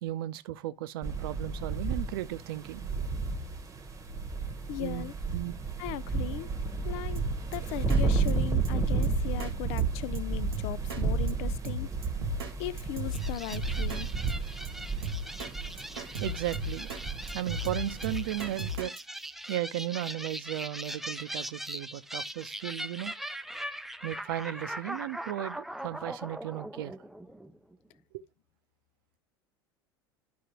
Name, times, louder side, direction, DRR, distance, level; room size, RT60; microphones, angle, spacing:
voice 1, 0.0-2.9 4.8-5.6 16.2-16.9 17.3-18.9 19.5-23.1 24.0-26.9 28.1-28.2, right 14 dB, 70° right, 0.6 m, -35 dB
sound 1, 1.0-18.8, right 4 dB, 25° right, 1.0 m, -32 dB
voice 2, 4.7-5.1 5.8-6.5 6.9-7.2 7.5-11.9 12.6-14.1, left 14 dB, 55° left, 0.4 m, -37 dB
Drum kit, 7.2-7.6 7.9-8.0 8.3-8.4 8.7-8.8 9.0-9.5 9.8-9.9 10.2-10.3 10.5-11.0 11.3-11.4 11.7-12.5 12.8-14.0 14.3-14.4 14.7-14.8 15.0-15.5 15.8-17.0 17.3-19.0, equal, 85° right, 1.1 m, -36 dB
sound 2, 13.1-27.8, right 1 dB, ahead, 0.5 m, -40 dB
11.5 x 4.7 x 2.9 m
hypercardioid pair, 75°, 12 cm